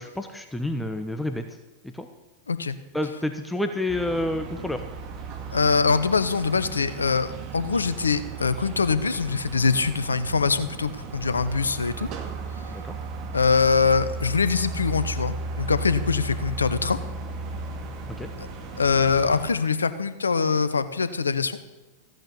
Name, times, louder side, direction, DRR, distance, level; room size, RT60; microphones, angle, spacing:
voice 1, 0.0-1.5 1.8-2.1 2.9-4.8 12.7-13.0 18.2-18.3, left 1 dB, 5° left, 6 dB, 1.1 m, -29 dB
voice 2, 2.5-2.8 5.5-12.1 13.3-17.0 18.4-18.5 18.8-21.6, left 5 dB, 85° left, 13 dB, 0.9 m, -23 dB
sound 1, 3.9-19.5, right 3 dB, 45° right, 2.1 m, -35 dB
15.0 x 9.1 x 8.4 m, 1.1 s
figure-of-eight pair, 95°, 0 cm